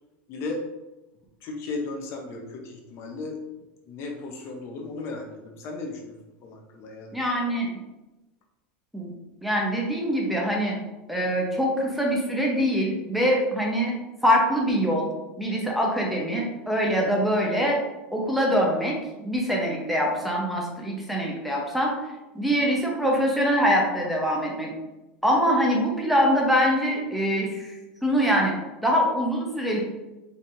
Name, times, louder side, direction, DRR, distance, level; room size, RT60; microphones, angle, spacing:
voice 1, 0.3-0.6 1.4-3.4 3.9-6.2 6.4-7.2, left 3 dB, 45° left, 2 dB, 0.7 m, -35 dB
voice 2, 7.1-7.7 8.9-9.1 9.4-10.7 11.1-13.9 14.2-15.1 15.4-17.8 18.1-21.9 22.3-24.7 25.2-27.7 28.0-28.5 28.8-29.8, equal, ahead, -2 dB, 0.8 m, -24 dB
4.2 x 3.4 x 2.5 m, 1.0 s
supercardioid pair, 130°, 6 cm